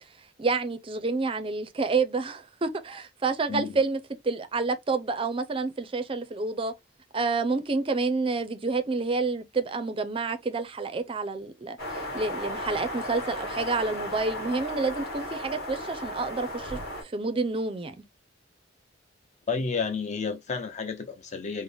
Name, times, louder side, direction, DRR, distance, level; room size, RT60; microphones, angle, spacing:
voice 1, 0.4-6.7 7.1-18.0, right 3 dB, 30° right, 0.5 m, -29 dB
sound 1, 11.8-17.0, left 1 dB, 55° left, 1.7 m, -35 dB
voice 2, 19.5-21.6, left 5 dB, 40° left, 0.6 m, -31 dB
3.8 x 2.1 x 3.3 m
head